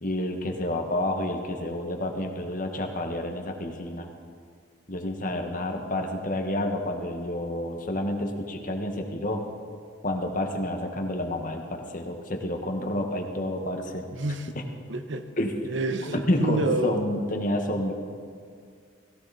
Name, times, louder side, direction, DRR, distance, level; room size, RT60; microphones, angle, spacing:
voice 1, 0.0-4.1 4.9-9.4 10.0-14.0 14.5-14.6 15.4-15.5 16.1-17.9, left 1 dB, 45° left, 4 dB, 1.6 m, -29 dB
voice 2, 14.2-14.5 14.9-15.3 15.7-17.2, right 2 dB, 85° right, 8 dB, 1.0 m, -28 dB
17.5 x 16.0 x 4.2 m, 2.2 s
head